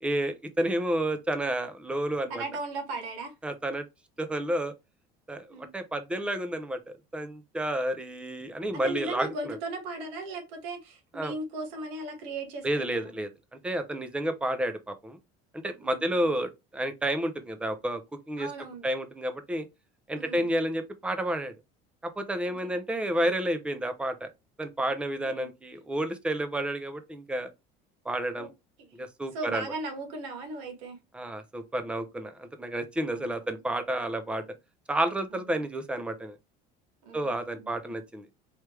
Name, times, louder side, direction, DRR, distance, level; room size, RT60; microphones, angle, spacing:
voice 1, 0.0-2.4 3.4-3.8 4.2-4.7 5.3-6.8 7.1-9.6 11.1-11.3 12.6-13.3 13.6-15.2 15.5-18.0 18.3-18.5 18.8-19.6 20.1-21.5 22.0-24.3 24.6-27.5 28.0-28.5 28.9-29.6 31.1-34.4 34.9-36.3 37.1-38.3, right 1 dB, 5° right, 0.5 m, -30 dB
voice 2, 2.3-3.3 5.5-5.7 8.8-13.1 15.8-16.4 18.4-18.8 20.2-20.5 22.4-22.7 25.2-25.5 28.4-28.5 28.9-29.0 29.3-31.0 33.1-33.3 37.0-37.9, right 2 dB, 80° right, 1.7 m, -37 dB
4.7 x 3.2 x 3.2 m
cardioid pair, 165°, 18 cm